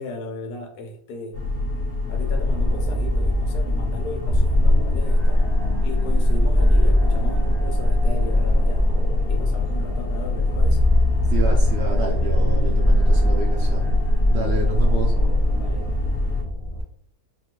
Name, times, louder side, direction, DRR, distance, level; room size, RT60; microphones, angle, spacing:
voice 1, 0.0-1.4 2.1-5.5 5.8-9.0 9.3-10.9 15.6-15.9, left 3 dB, 75° left, 5 dB, 1.3 m, -36 dB
sound 1, 1.3-16.4, left 3 dB, 50° left, 1.3 m, -26 dB
sound 2, 2.3-16.8, left 1 dB, 40° right, 1.0 m, -21 dB
voice 2, 11.3-13.9 14.3-15.1, right 3 dB, 65° right, 0 dB, 0.6 m, -29 dB
4.2 x 2.3 x 2.9 m, 0.64 s
omnidirectional pair, 1.7 m